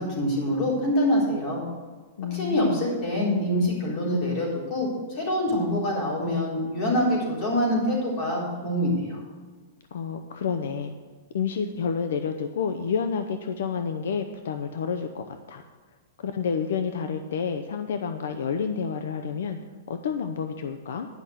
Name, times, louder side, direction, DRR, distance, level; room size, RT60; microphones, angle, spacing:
voice 1, 0.0-1.6 2.3-9.2, left 1 dB, 30° left, -4 dB, 3.9 m, -25 dB
voice 2, 2.2-2.9 9.9-10.9 11.3-15.6 16.2-19.6 19.9-21.1, left 6 dB, 80° left, 7 dB, 0.7 m, -29 dB
10.5 x 5.8 x 8.0 m, 1.4 s
supercardioid pair, 170°, 0 cm